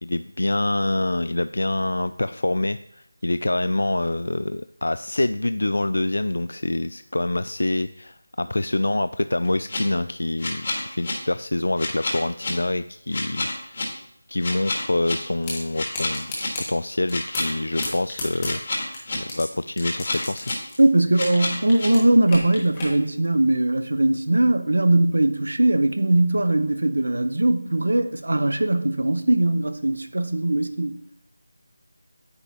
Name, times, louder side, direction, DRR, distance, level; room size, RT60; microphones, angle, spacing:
voice 1, 0.0-13.9 14.3-18.9 19.2-20.5, left 2 dB, 85° left, 0.3 m, -26 dB
sound 1, 9.4-9.8 10.4-11.1 11.8-12.5 13.1-13.8 14.4-15.1 15.7-16.5 17.1-17.8 18.4-19.1 19.8-20.5 21.1-21.9, left 2 dB, 30° left, 1.7 m, -28 dB
sound 2, 15.4-15.6 15.9-16.7 17.1-17.6 17.8-19.4 19.8-21.4 21.7-22.9, left 2 dB, 10° left, 1.3 m, -32 dB
voice 2, 20.8-31.0, right 1 dB, 90° right, 0.9 m, -20 dB
9.6 x 7.2 x 3.0 m
figure-of-eight pair, 180°, 0 cm